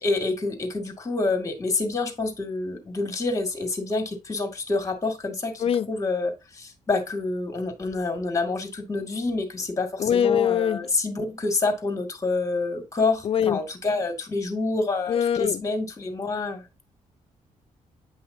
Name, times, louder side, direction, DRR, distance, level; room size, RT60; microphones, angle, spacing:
voice 1, 0.0-16.7, left 3 dB, 25° left, 2.1 m, -27 dB
voice 2, 10.0-10.9 13.2-13.6 15.1-15.6, left 9 dB, 45° left, 0.4 m, -23 dB
9.4 x 5.6 x 2.7 m
cardioid pair, 135°, 14 cm